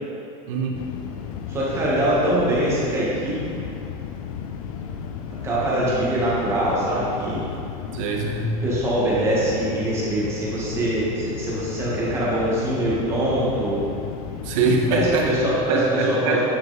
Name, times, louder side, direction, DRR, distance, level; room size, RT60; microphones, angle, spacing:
voice 1, 0.5-0.8 7.9-8.5 14.4-16.4, right 3 dB, 65° right, 0 dB, 1.2 m, -23 dB
sound 1, 0.7-15.7, left 7 dB, 85° left, 0.6 m, -34 dB
voice 2, 1.5-3.6 5.4-7.4 8.6-13.8 14.9-16.4, right 1 dB, 15° right, -8 dB, 1.4 m, -23 dB
8.8 x 5.7 x 4.0 m, 2.5 s
supercardioid pair, 170°, 18 cm